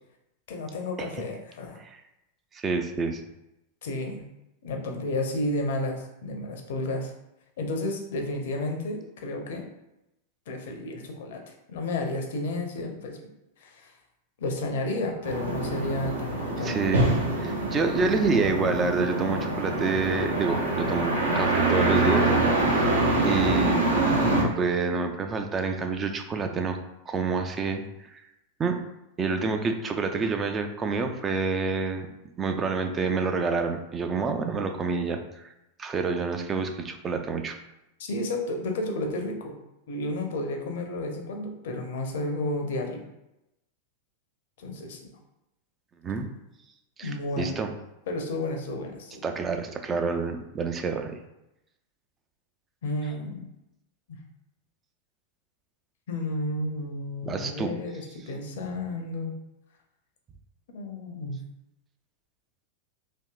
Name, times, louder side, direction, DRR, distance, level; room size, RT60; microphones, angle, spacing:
voice 1, 0.5-1.8 3.8-4.2 4.6-7.1 7.6-9.7 10.5-11.4 11.7-13.2 13.6-14.0 14.4-16.8 38.0-39.6 39.9-43.0 44.6-45.0 47.0-47.5 48.1-49.2 52.8-53.5 54.1-54.2 56.1-59.4 60.7-61.4, left 2 dB, 55° left, 3 dB, 0.5 m, -32 dB
voice 2, 2.5-3.2 16.6-17.1 17.4-22.9 23.2-26.8 27.1-28.2 28.6-28.8 29.2-32.1 32.4-35.5 35.8-37.6 46.0-46.3 47.0-47.7 49.2-51.2 57.2-57.7, right 4 dB, 20° right, 5 dB, 0.3 m, -28 dB
sound 1, 15.2-24.4, right 2 dB, 70° right, 0.6 m, -25 dB
3.4 x 2.6 x 2.3 m, 0.90 s
figure-of-eight pair, 90°, 0 cm